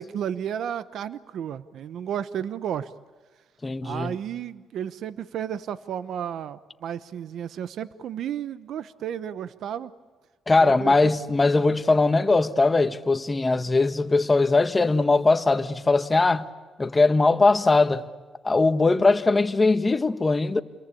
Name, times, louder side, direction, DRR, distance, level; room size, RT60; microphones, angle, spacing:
voice 1, 0.0-2.9 3.8-9.9 10.6-11.1, right 9 dB, 70° right, 0.9 m, -32 dB
voice 2, 3.6-4.2 10.5-16.5 16.8-18.1 18.4-20.6, left 3 dB, 25° left, 1.5 m, -20 dB
29.5 x 22.5 x 8.5 m
cardioid pair, 90°, 0 cm